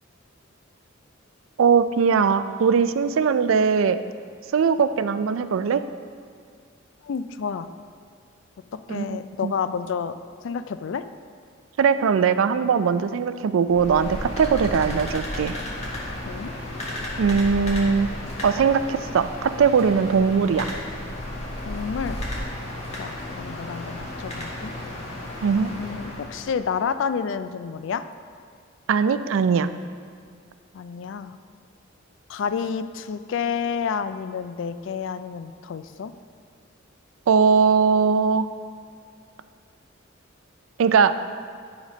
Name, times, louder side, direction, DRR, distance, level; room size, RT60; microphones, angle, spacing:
voice 1, 1.6-4.0 4.5-5.8 8.9-9.2 9.4-9.5 11.8-15.6 17.2-18.1 18.4-20.7 25.4-25.7 28.9-29.7 37.3-38.5 40.8-41.2, right 6 dB, 80° right, 12 dB, 0.4 m, -20 dB
voice 2, 7.0-7.7 8.7-10.1 10.4-11.1 16.2-16.5 21.7-22.2 23.0-24.7 25.8-28.0 30.7-31.4 32.3-36.1, left 6 dB, 70° left, 12 dB, 0.4 m, -29 dB
sound 1, 13.7-26.7, left 1 dB, 35° left, 1.5 m, -33 dB
10.5 x 4.1 x 5.1 m, 2.2 s
head